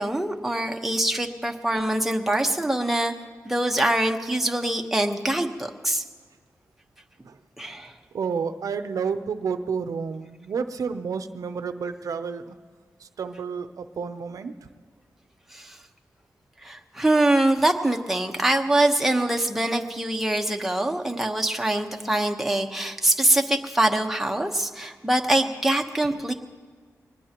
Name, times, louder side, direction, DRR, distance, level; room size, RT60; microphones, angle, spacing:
voice 1, 0.0-3.1 3.4-6.0 7.6-7.9 15.5-15.8 16.6-26.3, right 1 dB, 5° right, 2 dB, 1.1 m, -24 dB
voice 2, 8.1-12.6 13.0-14.5, right 6 dB, 85° right, 9 dB, 0.6 m, -30 dB
22.5 x 19.5 x 3.0 m, 1.6 s
wide cardioid pair, 85°, 6 cm